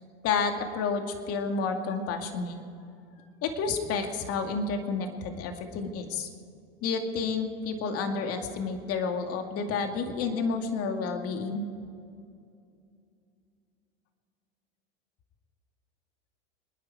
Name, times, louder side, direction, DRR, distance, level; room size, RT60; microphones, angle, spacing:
voice 1, 0.2-2.6 3.4-6.3 6.8-11.7, left 4 dB, 55° left, 5 dB, 2.3 m, -30 dB
29.0 x 10.0 x 4.7 m, 2.5 s
hypercardioid pair, 95°, 29 cm